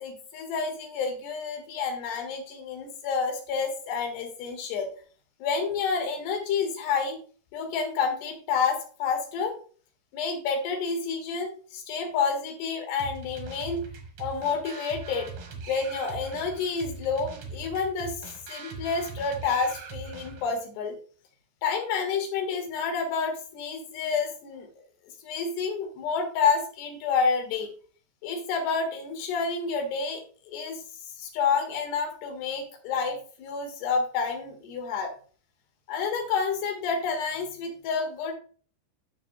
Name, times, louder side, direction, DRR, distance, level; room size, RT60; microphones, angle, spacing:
voice 1, 0.0-4.9 5.4-7.2 7.5-9.6 10.1-13.8 14.2-15.3 15.7-20.9 21.6-24.7 25.2-27.7 28.2-35.1 35.9-38.3, left 5 dB, 75° left, 4 dB, 3.5 m, -29 dB
sound 1, 13.0-20.6, right 4 dB, 80° right, 1.3 m, -41 dB
12.0 x 5.9 x 2.2 m, 0.42 s
omnidirectional pair, 5.0 m